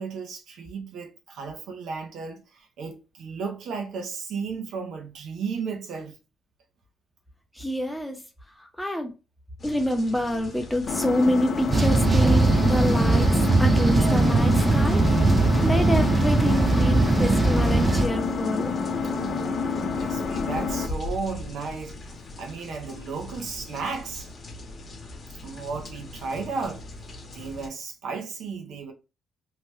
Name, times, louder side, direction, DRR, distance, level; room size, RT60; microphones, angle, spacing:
voice 1, 0.0-6.2 19.0-24.3 25.4-26.8 27.3-28.9, right 5 dB, 75° right, 0.7 m, -34 dB
voice 2, 7.6-8.2 8.6-9.1 9.6-13.3 13.6-15.3 15.6-18.7, left 1 dB, 5° left, 0.7 m, -27 dB
sound 1, 9.6-27.7, left 2 dB, 40° left, 0.9 m, -39 dB
Engine, 10.9-20.9, left 5 dB, 60° left, 0.6 m, -28 dB
sound 2, 11.7-18.1, right 3 dB, 30° right, 0.4 m, -20 dB
2.8 x 2.2 x 3.2 m
cardioid pair, 90°, 0 cm